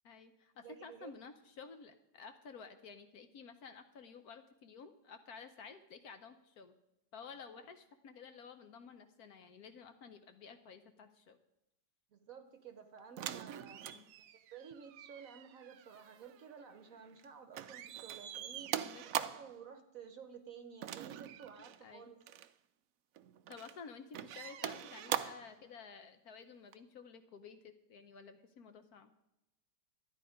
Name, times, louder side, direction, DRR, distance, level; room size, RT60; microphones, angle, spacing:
voice 1, 0.0-6.7 7.1-11.4 13.8-14.1 18.7-19.0 21.8-22.1 23.5-29.1, left 5 dB, 60° left, 8 dB, 1.2 m, -53 dB
voice 2, 0.6-1.1 7.6-7.7 12.1-13.8 14.5-18.7 19.1-22.2, right 7 dB, 55° right, 8 dB, 1.1 m, -53 dB
sound 1, 13.2-17.3 17.5-19.6 20.8-21.8 22.2-22.5 23.2-23.8 24.1-25.5 26.7-26.8, right 11 dB, 75° right, 0.8 m, -42 dB
12.5 x 10.0 x 5.0 m, 0.91 s
omnidirectional pair, 2.0 m